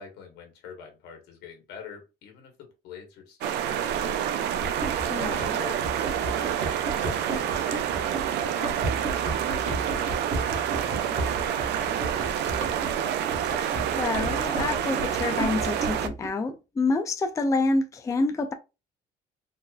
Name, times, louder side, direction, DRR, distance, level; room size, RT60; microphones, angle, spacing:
voice 1, 0.0-4.4 5.5-5.9 6.3-12.6, left 7 dB, 80° left, 1.4 m, -46 dB
sound 1, 3.4-16.1, right 9 dB, 80° right, 0.5 m, -28 dB
Run, 4.6-16.3, right 2 dB, 45° right, 1.6 m, -34 dB
voice 2, 5.1-5.6 14.0-18.5, left 3 dB, 20° left, 0.4 m, -27 dB
4.0 x 2.5 x 2.3 m
cardioid pair, 110°, 17 cm